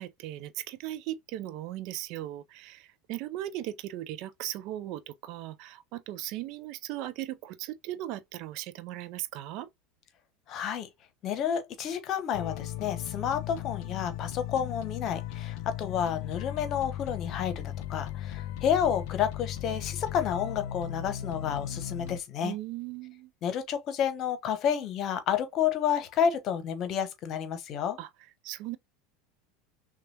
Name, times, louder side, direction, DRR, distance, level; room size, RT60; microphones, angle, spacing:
voice 1, 0.0-9.7 22.4-23.3 28.0-28.1 28.4-28.8, right 14 dB, 55° right, 0.4 m, -38 dB
voice 2, 10.5-10.9 11.2-22.5 23.4-28.0, left 8 dB, 45° left, 1.0 m, -30 dB
sound 1, 12.3-22.2, left 11 dB, 60° left, 0.4 m, -37 dB
5.9 x 2.3 x 2.8 m
figure-of-eight pair, 75°, 0 cm